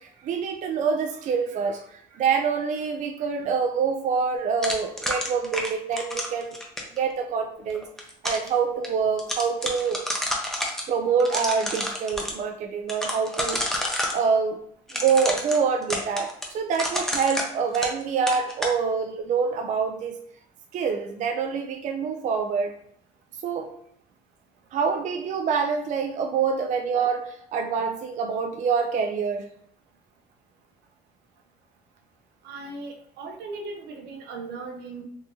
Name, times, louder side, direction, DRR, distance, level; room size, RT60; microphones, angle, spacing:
voice 1, 0.0-6.6 7.0-7.9 8.2-10.0 10.9-13.6 14.1-14.6 14.9-20.2 20.7-22.7 23.4-23.7 24.7-29.5, right 6 dB, 45° right, 5 dB, 0.4 m, -26 dB
sound 1, 4.6-7.0 7.7-8.5 8.8-8.9 9.2-10.8 11.2-12.3 12.9-14.2 14.9-18.0 18.3-18.8, left 1 dB, 5° left, 0.7 m, -29 dB
voice 2, 32.4-35.0, right 3 dB, 80° right, 4 dB, 0.7 m, -38 dB
3.5 x 2.6 x 2.8 m, 0.69 s
cardioid pair, 110°, 17 cm